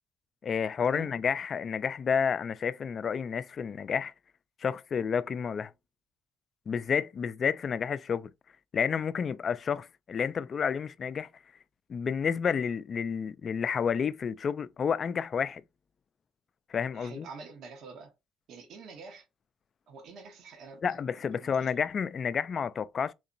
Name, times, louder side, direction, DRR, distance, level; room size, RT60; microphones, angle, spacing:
voice 1, 0.4-4.1 4.6-5.7 6.7-8.3 8.7-11.3 11.9-15.6 16.7-17.3 20.8-23.1, left 6 dB, 50° left, 0.3 m, -30 dB
voice 2, 16.9-18.1 18.5-19.3 19.9-21.8, right 4 dB, 70° right, 0.9 m, -47 dB
3.8 x 2.8 x 2.5 m
hypercardioid pair, 55°, 0 cm